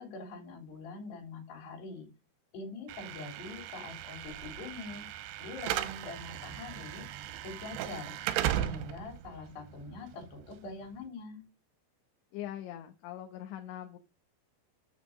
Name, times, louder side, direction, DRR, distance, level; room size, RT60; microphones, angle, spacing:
voice 1, 0.0-2.1 2.5-5.1 5.4-7.1 7.4-8.2 8.6-11.4, left 3 dB, 60° left, 4 dB, 4.8 m, -44 dB
Slam / Alarm, 2.9-11.0, right 12 dB, 85° right, 2.4 m, -37 dB
voice 2, 12.3-14.0, left 11 dB, 75° left, 4 dB, 3.3 m, -42 dB
8.2 x 7.1 x 6.3 m, 0.29 s
omnidirectional pair, 5.5 m